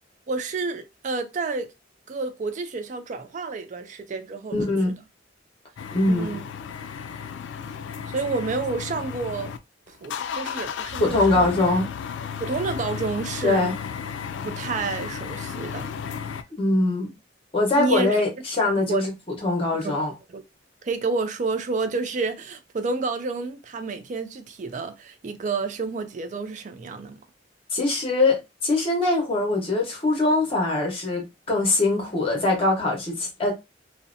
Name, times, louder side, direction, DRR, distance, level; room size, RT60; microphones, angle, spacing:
voice 1, 0.3-1.7 2.1-4.6 6.1-6.4 8.1-9.5 9.9-11.5 12.4-13.7 14.4-15.9 17.8-18.2 18.7-19.1 19.8-20.0 20.3-20.4 20.8-27.2, right 4 dB, 40° right, 0.4 m, -29 dB
voice 2, 4.5-5.0 5.9-6.4 11.0-11.9 13.4-13.8 16.6-17.1 17.5-20.1 27.7-33.5, left 2 dB, 30° left, 0.9 m, -22 dB
sound 1, 5.8-9.6 9.9-16.4, left 7 dB, 75° left, 0.3 m, -34 dB
2.7 x 2.1 x 2.5 m
head